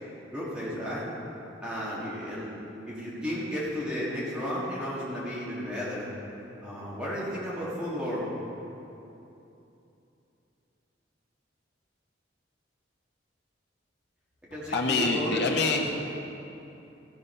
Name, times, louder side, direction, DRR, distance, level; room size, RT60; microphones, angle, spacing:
voice 1, 0.3-1.1 1.6-2.6 2.9-6.1 6.6-8.3 14.5-15.4, equal, 5° right, -9 dB, 1.8 m, -33 dB
voice 2, 14.7-16.2, left 3 dB, 65° left, -1 dB, 1.0 m, -26 dB
14.0 x 5.6 x 5.5 m, 2.9 s
head